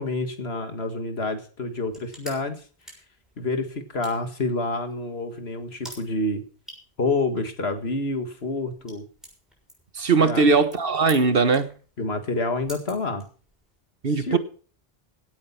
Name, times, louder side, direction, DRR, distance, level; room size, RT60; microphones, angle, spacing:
voice 1, 0.0-2.6 3.4-6.4 7.0-9.1 10.2-10.5 12.0-13.2 14.2-14.4, left 3 dB, 85° left, 2.1 m, -28 dB
sound 1, 1.7-13.8, equal, ahead, 6.6 m, -49 dB
voice 2, 9.9-11.7 14.0-14.4, right 4 dB, 65° right, 1.5 m, -20 dB
17.0 x 8.8 x 5.8 m
omnidirectional pair, 1.0 m